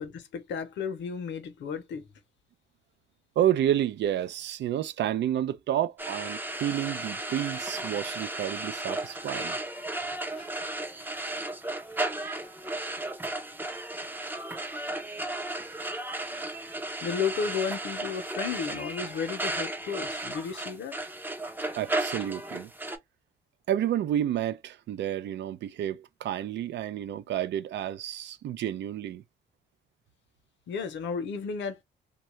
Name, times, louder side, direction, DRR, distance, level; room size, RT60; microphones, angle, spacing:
voice 1, 0.0-2.0 9.8-9.9 10.2-10.7 17.0-21.0 30.7-31.8, left 6 dB, 65° left, 0.7 m, -33 dB
voice 2, 3.4-9.6 21.8-22.7 23.7-29.2, right 11 dB, 65° right, 0.4 m, -30 dB
sound 1, 6.0-23.0, right 2 dB, 10° right, 0.5 m, -34 dB
2.7 x 2.3 x 3.0 m
cardioid pair, 90°, 20 cm